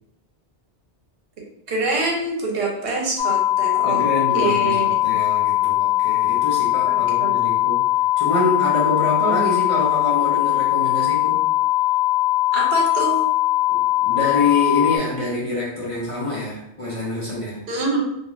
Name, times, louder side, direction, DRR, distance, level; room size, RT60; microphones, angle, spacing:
voice 1, 1.7-4.0 4.3-5.0 6.9-7.3 9.2-9.5 12.5-13.2 17.7-18.0, right 3 dB, 70° right, -1 dB, 0.9 m, -25 dB
sound 1, 3.2-15.0, left 15 dB, 90° left, 0.9 m, -20 dB
voice 2, 3.8-7.9 8.2-11.5 13.7-17.6, left 2 dB, 40° left, -7 dB, 0.6 m, -26 dB
2.4 x 2.3 x 3.0 m, 0.80 s
omnidirectional pair, 1.1 m